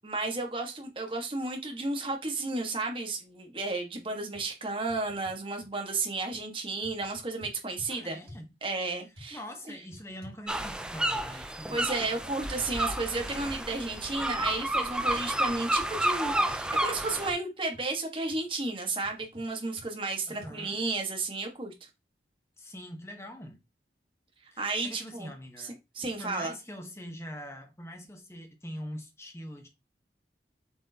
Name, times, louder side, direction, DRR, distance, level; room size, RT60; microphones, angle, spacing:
voice 1, 0.0-8.2 8.6-9.4 9.7-9.8 11.7-21.7 24.6-25.3 25.6-25.7 25.9-26.5, right 3 dB, 30° right, 1.5 m, -33 dB
sound 1, 3.9-4.0 4.3-4.5 4.9-5.7 6.3-6.5 6.8-7.9 8.3-8.5 9.2-9.3 9.9-11.5 11.8-11.9 12.2-12.7 13.3-13.4 14.4-14.6 15.1-15.6 16.0-17.4 17.7-17.8 18.3-18.5 19.0-19.5 19.8-19.9 20.4-20.5, left 1 dB, 60° right, 2.7 m, -50 dB
voice 2, 7.9-8.5 9.3-11.9 20.3-20.8 22.6-23.6 24.5-25.8 26.2-29.7, equal, 15° left, 1.1 m, -43 dB
sound 2, 10.5-17.3, right 1 dB, 5° right, 0.5 m, -31 dB
7.7 x 4.5 x 2.9 m
head